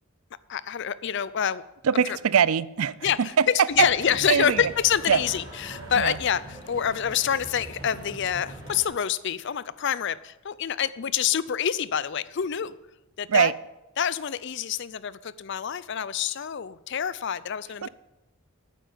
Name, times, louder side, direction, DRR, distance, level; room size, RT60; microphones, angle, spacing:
voice 1, 0.5-1.6 1.9-2.2 3.0-12.7 13.2-13.5 14.0-17.9, left 8 dB, 50° left, 18 dB, 0.4 m, -27 dB
voice 2, 1.8-2.9 3.4-3.5 4.3-4.6 5.1-5.2 6.0-6.1 13.3-13.5, right 7 dB, 75° right, 19 dB, 0.5 m, -21 dB
sound 1, 3.7-8.8, right 1 dB, 20° right, 5.0 m, -42 dB
9.1 x 9.1 x 8.5 m, 0.99 s
head